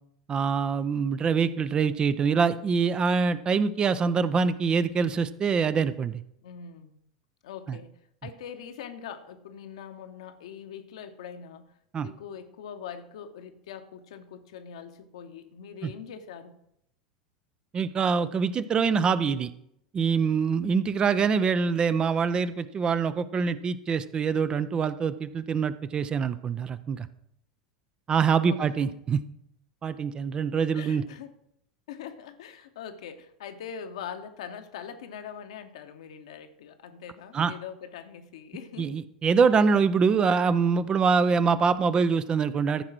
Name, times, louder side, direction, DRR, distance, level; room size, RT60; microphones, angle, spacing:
voice 1, 0.3-6.1 7.7-7.8 11.9-12.1 15.8-15.9 17.7-19.5 19.9-27.1 28.1-29.2 29.8-31.0 37.3-37.5 38.8-42.8, right 5 dB, 25° right, 14 dB, 0.5 m, -24 dB
voice 2, 6.4-6.9 7.4-11.7 12.0-16.6 28.4-28.8 30.7-31.3 31.9-39.0, left 8 dB, 60° left, 8 dB, 1.0 m, -42 dB
14.5 x 4.8 x 6.1 m, 0.77 s
figure-of-eight pair, 80°, 4 cm